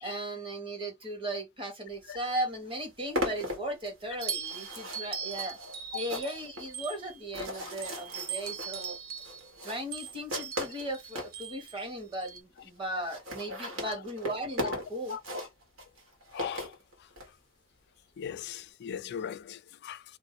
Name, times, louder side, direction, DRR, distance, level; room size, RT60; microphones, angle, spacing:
voice 1, 0.0-5.6 5.9-9.0 9.6-15.2, right 1 dB, 25° right, 1.2 m, -37 dB
sound 1, 2.2-2.3 2.5-11.4 12.0-12.1 12.3-12.4 12.6-12.7 12.9-17.3, equal, 75° right, 1.4 m, -38 dB
sound 2, 4.2-7.3 7.8-12.4, right 7 dB, 45° right, 0.6 m, -40 dB
voice 2, 16.3-16.8 18.2-20.0, left 8 dB, 55° left, 0.3 m, -39 dB
2.6 x 2.1 x 4.0 m
head